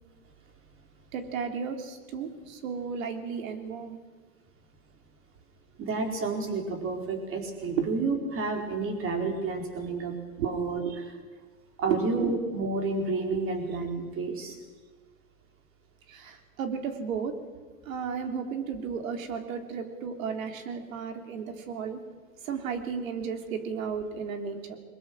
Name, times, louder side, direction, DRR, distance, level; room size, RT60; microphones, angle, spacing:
voice 1, 1.1-4.0 7.8-7.9 10.4-10.5 10.8-11.0 11.9-12.3 16.1-17.3 17.8-22.0 22.4-24.8, right 6 dB, 70° right, 6 dB, 3.4 m, -33 dB
voice 2, 5.8-10.1 10.4-10.8 11.8-14.6, right 3 dB, 30° right, 4 dB, 4.4 m, -30 dB
22.0 x 21.0 x 6.4 m, 1.4 s
hypercardioid pair, 120°, 42 cm